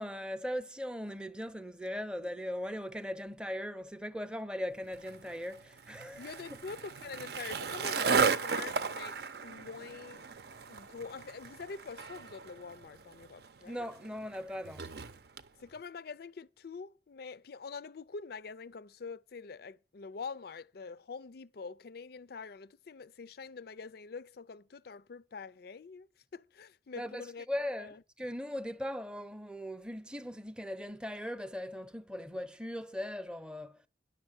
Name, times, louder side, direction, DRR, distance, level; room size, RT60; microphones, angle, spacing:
voice 1, 0.0-6.3 13.7-14.9 27.0-33.8, left 1 dB, 5° right, 0.6 m, -39 dB
Skateboard, 4.9-15.5, right 5 dB, 60° right, 0.7 m, -35 dB
voice 2, 6.2-9.2 9.4-10.2 10.7-13.8 15.6-27.5 27.8-28.0, left 5 dB, 60° left, 0.5 m, -45 dB
10.5 x 6.5 x 8.0 m
head